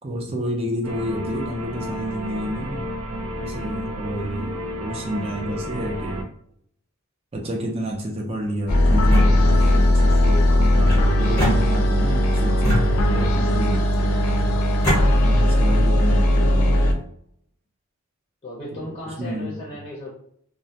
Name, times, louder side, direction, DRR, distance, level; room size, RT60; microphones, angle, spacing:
voice 1, 0.0-2.9 3.4-6.2 7.3-14.1 15.2-16.9 18.7-18.8 19.2-19.6, equal, 25° right, -1 dB, 0.5 m, -29 dB
sound 1, 0.8-6.2, equal, 75° right, 0.5 m, -31 dB
sound 2, 8.7-16.9, left 1 dB, 80° left, 0.4 m, -18 dB
sound 3, 8.9-9.8 10.8-12.1 12.6-13.5 14.2-15.0, equal, 15° left, 1.0 m, -26 dB
voice 2, 18.4-20.1, left 1 dB, 30° left, -5 dB, 0.5 m, -36 dB
2.2 x 2.1 x 2.7 m, 0.68 s
head